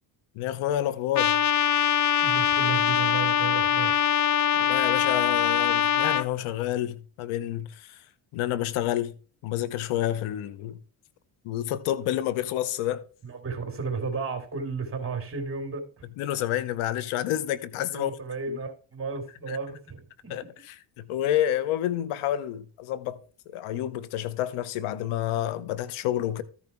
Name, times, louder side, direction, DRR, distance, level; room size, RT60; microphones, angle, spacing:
voice 1, 0.4-1.4 4.6-8.0 8.3-9.1 9.4-10.8 11.4-13.0 16.2-18.1 18.5-18.6 19.5-19.6 20.3-20.4 21.0-23.2 23.5-26.4, left 12 dB, 85° left, 1.0 m, -29 dB
Trumpet, 1.1-6.2, left 9 dB, 35° left, 0.5 m, -23 dB
voice 2, 2.2-3.9 13.2-16.1 17.9-20.4, right 4 dB, 25° right, 3.3 m, -33 dB
13.5 x 5.7 x 4.5 m
cardioid pair, 85°, 49 cm